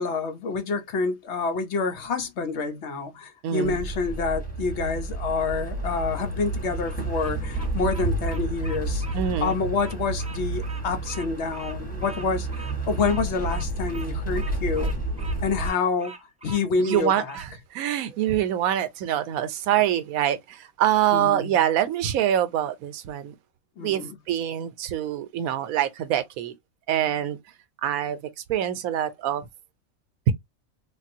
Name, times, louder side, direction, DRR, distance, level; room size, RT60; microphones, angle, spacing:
voice 1, 0.0-9.0 9.4-15.0 15.4-16.1 16.4-17.3 21.1-21.5 23.8-24.1, left 4 dB, 60° left, 0.9 m, -28 dB
voice 2, 3.4-3.8 9.1-9.6 16.8-23.3 23.8-26.5 26.9-27.4 27.8-29.5 30.3-30.4, right 11 dB, 85° right, 1.0 m, -25 dB
sound 1, 3.6-15.7, right 2 dB, 5° left, 1.1 m, -30 dB
Bird vocalization bird call bird song, 6.6-17.5, right 4 dB, 10° right, 0.4 m, -43 dB
3.5 x 2.3 x 2.6 m
omnidirectional pair, 1.4 m